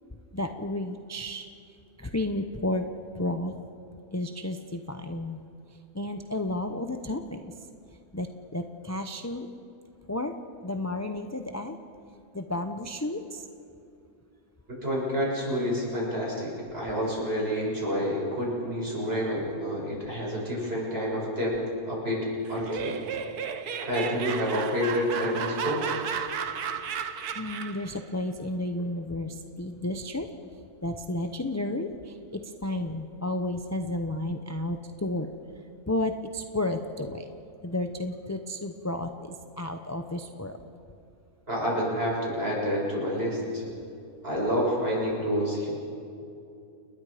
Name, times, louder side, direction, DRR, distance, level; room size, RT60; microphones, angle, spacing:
voice 1, 0.3-1.5 2.0-2.9 3.1-3.6 4.1-5.4 5.9-7.5 8.1-9.5 10.1-10.3 10.6-11.8 12.3-13.5 27.3-30.3 30.8-35.3 35.9-37.3 37.6-40.6, left 1 dB, 15° left, 6 dB, 0.5 m, -32 dB
voice 2, 14.7-21.6 21.9-23.0 23.8-25.9 41.5-43.6 44.2-45.7, equal, 35° right, -4 dB, 7.0 m, -28 dB
Laughter, 22.5-27.9, right 7 dB, 75° right, 1.5 m, -33 dB
29.5 x 20.5 x 5.1 m, 2.6 s
omnidirectional pair, 1.7 m